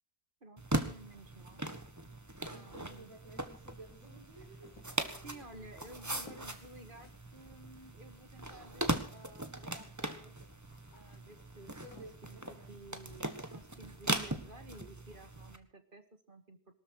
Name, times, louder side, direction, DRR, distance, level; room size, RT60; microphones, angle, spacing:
voice 1, 0.4-1.7 2.5-3.1 5.2-10.3 10.9-16.7, right 2 dB, 35° right, 9 dB, 2.0 m, -54 dB
sound 1, 0.6-15.6, right 1 dB, 10° right, 1.5 m, -40 dB
voice 2, 2.5-6.2 11.8-12.8, right 1 dB, 55° right, -4 dB, 5.6 m, -55 dB
sound 2, 4.6-9.6 9.8-13.8, left 2 dB, 75° left, 3.5 m, -61 dB
22.5 x 13.5 x 4.7 m, 0.39 s
omnidirectional pair, 1.6 m